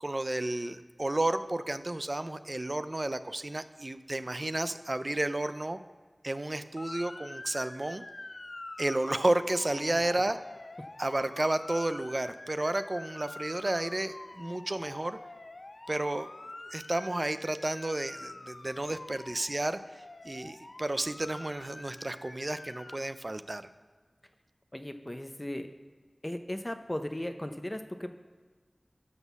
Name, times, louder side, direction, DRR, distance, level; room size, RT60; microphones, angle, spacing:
voice 1, 0.0-5.8 6.2-8.0 8.8-10.4 11.0-15.2 15.9-16.3 16.7-19.8 20.2-23.7, right 1 dB, 45° right, 11 dB, 0.5 m, -32 dB
Motor vehicle (road) / Siren, 6.8-23.0, left 2 dB, 65° left, 0.7 m, -46 dB
voice 2, 24.7-25.7 26.2-28.1, left 1 dB, 25° left, 7 dB, 0.7 m, -37 dB
12.5 x 4.2 x 7.1 m, 1.5 s
wide cardioid pair, 40°, 0 cm